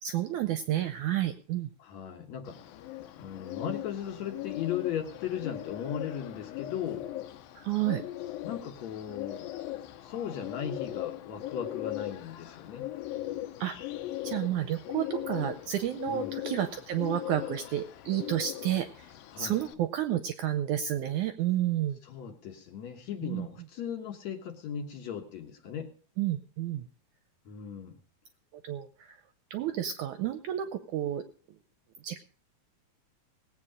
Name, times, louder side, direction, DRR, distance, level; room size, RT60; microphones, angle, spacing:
voice 1, 0.0-1.7 7.6-8.0 13.6-13.8 14.2-19.1 19.4-22.0 23.2-23.5 26.2-26.9 28.6-29.2 29.5-31.2 32.0-32.2, right 12 dB, 75° right, 9 dB, 1.8 m, -30 dB
voice 2, 1.8-2.6 3.2-7.1 8.4-9.8 10.0-12.9 16.1-16.3 19.3-19.6 22.0-25.9 27.5-27.9, left 8 dB, 60° left, 4 dB, 2.3 m, -37 dB
Bird, 2.5-19.7, left 14 dB, 80° left, 2.6 m, -39 dB
18.5 x 8.4 x 5.0 m, 0.43 s
omnidirectional pair, 4.2 m